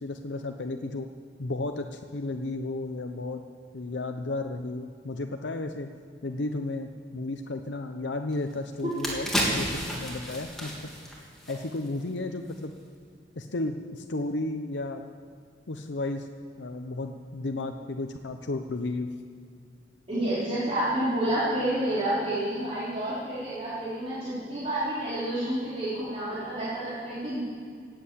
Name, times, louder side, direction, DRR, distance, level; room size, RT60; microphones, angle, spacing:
voice 1, 0.0-1.1 1.4-3.4 3.7-5.9 6.2-10.9 11.5-12.7 13.4-15.1 15.7-16.3 16.6-19.1, left 2 dB, 75° left, 5 dB, 0.8 m, -33 dB
sound 1, 8.3-8.4 8.8-12.1 12.4-12.6, equal, ahead, 2.9 m, -32 dB
voice 2, 20.1-27.4, right 1 dB, 35° right, -11 dB, 4.1 m, -29 dB
17.5 x 7.7 x 8.5 m, 2.2 s
head